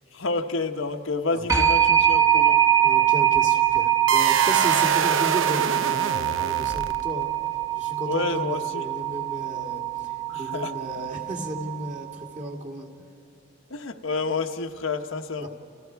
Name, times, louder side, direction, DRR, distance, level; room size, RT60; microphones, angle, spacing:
voice 1, 0.1-2.6 8.0-8.8 10.3-10.7 13.7-15.5, left 3 dB, 80° left, 5 dB, 1.1 m, -29 dB
sound 1, 1.5-12.1, right 11 dB, 15° right, 1.0 m, -23 dB
voice 2, 2.8-7.3 7.8-12.9 15.4-15.5, right 1 dB, 35° right, 1 dB, 2.3 m, -34 dB
sound 2, 4.1-7.2, right 6 dB, 75° right, 0.7 m, -25 dB
30.0 x 29.5 x 4.7 m, 2.8 s
head